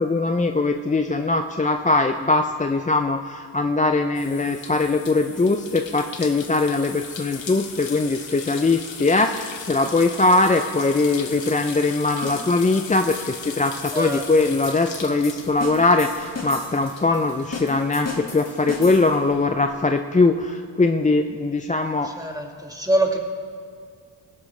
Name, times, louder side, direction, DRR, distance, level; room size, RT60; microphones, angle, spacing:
voice 1, 0.0-22.1, left 3 dB, 20° left, 6 dB, 0.4 m, -21 dB
sound 1, 4.1-18.2 18.5-19.7, left 6 dB, 90° left, 1.1 m, -38 dB
sound 2, 12.2-19.3, left 3 dB, 35° left, 1.9 m, -37 dB
voice 2, 13.9-14.2 22.0-23.2, right 1 dB, 10° right, 2 dB, 1.5 m, -24 dB
20.0 x 11.5 x 3.2 m, 2.2 s
wide cardioid pair, 85°, 44 cm